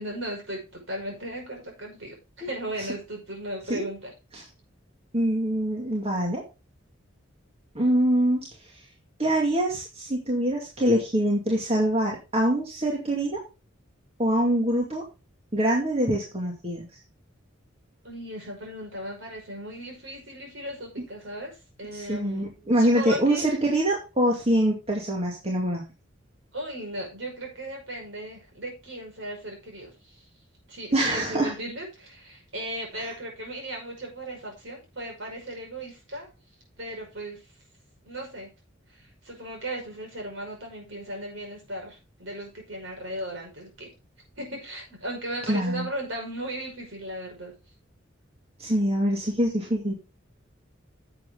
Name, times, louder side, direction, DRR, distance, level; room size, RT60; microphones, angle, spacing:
voice 1, 0.0-4.1 18.0-22.4 22.8-23.4 26.5-30.2 30.7-36.3 36.8-37.4 38.0-38.5 38.9-43.9 44.4-47.5, right 1 dB, 70° right, 1 dB, 5.7 m, -36 dB
voice 2, 5.1-6.4 7.7-8.5 9.2-13.4 14.2-15.0 15.5-16.8 21.9-25.8 30.9-31.5 45.5-45.9 48.6-49.9, right 1 dB, 30° right, -1 dB, 2.3 m, -24 dB
10.5 x 8.0 x 3.8 m, 0.29 s
head